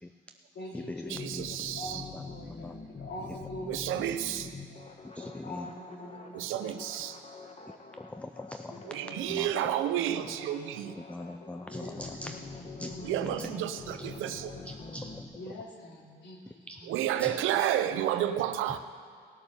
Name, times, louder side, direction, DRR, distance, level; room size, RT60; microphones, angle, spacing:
voice 1, 0.5-3.9 5.2-6.8 8.7-9.7 11.6-13.8 15.3-16.9, left 1 dB, 60° left, -1 dB, 2.7 m, -45 dB
sound 1, 1.1-15.2, left 3 dB, 30° left, 1.3 m, -45 dB
voice 2, 1.1-2.0 3.7-4.5 6.3-7.2 8.8-11.0 13.0-14.6 16.8-18.8, right 11 dB, 90° right, 11 dB, 0.7 m, -31 dB
voice 3, 5.2-5.6 8.2-8.7 9.3-9.5 11.1-12.4 12.8-12.9 14.7-15.3 16.7-16.8 17.2-17.3, left 1 dB, 5° left, 8 dB, 0.4 m, -41 dB
17.5 x 7.0 x 6.9 m, 2.1 s
cardioid pair, 90°, 20 cm